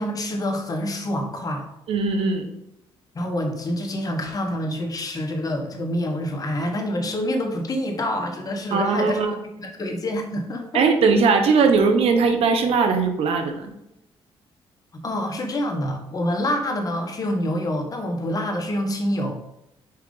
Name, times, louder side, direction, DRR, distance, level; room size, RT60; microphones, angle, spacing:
voice 1, 0.0-1.6 3.1-9.2 9.6-10.8 14.9-19.4, left 1 dB, 35° left, 2 dB, 1.3 m, -27 dB
voice 2, 1.9-2.5 8.7-9.4 10.7-13.7, right 4 dB, 75° right, 6 dB, 0.9 m, -19 dB
5.8 x 4.8 x 3.9 m, 0.84 s
cardioid pair, 95°, 10 cm